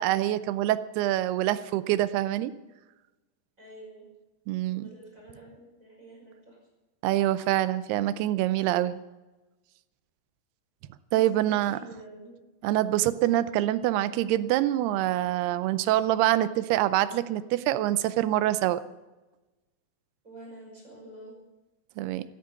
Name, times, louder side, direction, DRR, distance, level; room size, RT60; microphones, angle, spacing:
voice 1, 0.0-2.5 4.5-4.9 7.0-9.0 11.1-11.8 12.6-18.8 22.0-22.2, right 14 dB, 85° right, 14 dB, 2.7 m, -25 dB
voice 2, 3.6-4.1 4.7-6.6 11.1-11.2 11.5-12.4 20.2-21.3, right 1 dB, 20° right, -1 dB, 5.5 m, -47 dB
14.5 x 13.0 x 6.8 m, 1.1 s
omnidirectional pair, 4.6 m